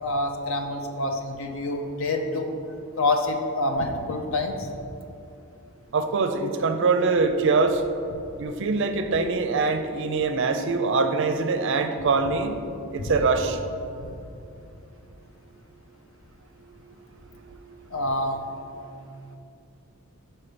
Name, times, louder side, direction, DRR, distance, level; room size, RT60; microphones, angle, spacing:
voice 1, 0.0-2.5 3.0-4.5 13.0-13.1 17.9-18.4, left 2 dB, 60° left, 4 dB, 0.6 m, -26 dB
voice 2, 5.9-7.8 8.4-12.5 12.9-13.6, right 4 dB, 55° right, 7 dB, 0.5 m, -23 dB
5.9 x 4.5 x 5.0 m, 2.6 s
head